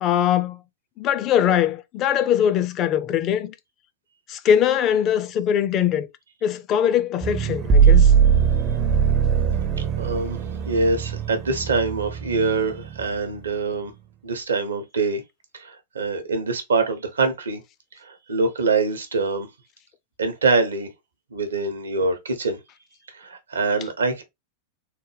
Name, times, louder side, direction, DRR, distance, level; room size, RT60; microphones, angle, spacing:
voice 1, 0.0-0.6 1.0-3.5 4.3-6.1 6.4-8.1, left 9 dB, 35° left, 0.5 m, -21 dB
sound 1, 7.2-13.5, right 7 dB, 35° right, 0.5 m, -20 dB
voice 2, 9.8-13.9 14.2-15.2 15.5-17.6 18.0-19.5 20.2-20.9 21.3-22.6 23.1-24.2, right 3 dB, 70° right, 0.8 m, -24 dB
3.7 x 2.1 x 3.2 m
figure-of-eight pair, 90°, 0 cm